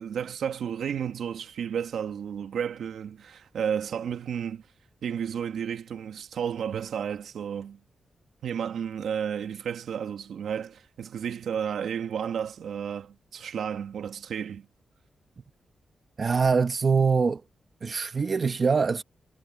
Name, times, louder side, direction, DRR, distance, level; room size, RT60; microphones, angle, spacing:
voice 1, 0.0-4.7 5.0-7.8 8.4-14.7, right 8 dB, 85° right, 1.9 m, -32 dB
voice 2, 16.2-17.4 17.8-19.0, right 5 dB, 45° right, 1.2 m, -23 dB
cardioid pair, 90°, 0 cm